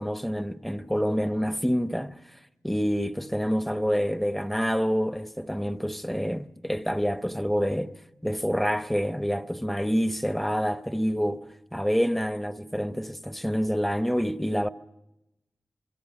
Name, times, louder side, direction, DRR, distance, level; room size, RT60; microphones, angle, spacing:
voice 1, 0.0-2.2 2.6-14.7, equal, 5° left, 0.9 m, -27 dB
26.0 x 22.5 x 5.9 m
cardioid pair, 55°, 5 cm